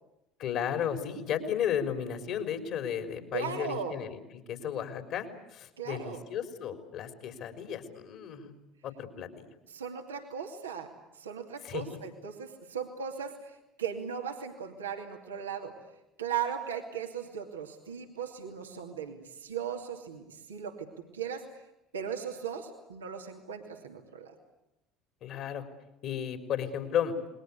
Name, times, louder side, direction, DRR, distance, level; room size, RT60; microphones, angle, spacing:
voice 1, 0.4-4.2 4.5-8.5 8.8-9.5 11.6-11.8 25.2-25.6 26.0-27.1, left 9 dB, 55° left, 7 dB, 4.0 m, -34 dB
voice 2, 3.3-4.0 5.8-6.2 9.7-15.7 16.2-20.9 21.1-21.4 21.9-24.3, right 7 dB, 80° right, 2 dB, 2.5 m, -37 dB
28.5 x 21.5 x 8.4 m, 0.91 s
figure-of-eight pair, 65°, 0 cm